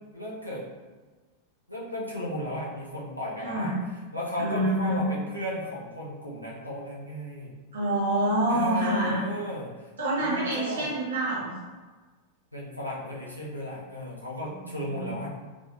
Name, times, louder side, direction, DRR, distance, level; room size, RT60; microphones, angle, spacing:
voice 1, 0.1-0.6 1.7-3.8 4.1-7.6 8.5-9.9 10.2-10.9 12.5-15.3, left 1 dB, 90° left, -6 dB, 0.6 m, -34 dB
voice 2, 3.4-3.8 4.4-5.0 7.7-9.2 10.0-11.5 14.5-14.7 14.9-15.2, right 1 dB, 65° right, -5 dB, 1.1 m, -27 dB
3.5 x 2.4 x 2.5 m, 1.3 s
figure-of-eight pair, 90°, 0 cm